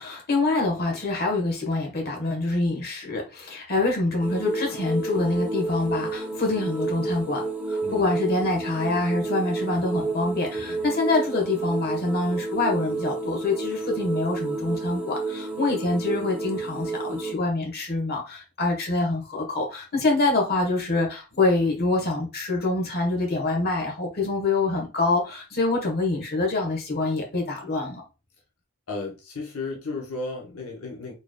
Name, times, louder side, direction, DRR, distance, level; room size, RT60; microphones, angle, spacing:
voice 1, 0.0-28.0, left 2 dB, 45° left, 1.3 m, -25 dB
sound 1, 4.2-17.3, right 3 dB, 5° right, 1.0 m, -30 dB
voice 2, 28.9-31.1, left 3 dB, 75° left, 0.9 m, -34 dB
4.3 x 3.4 x 2.3 m
head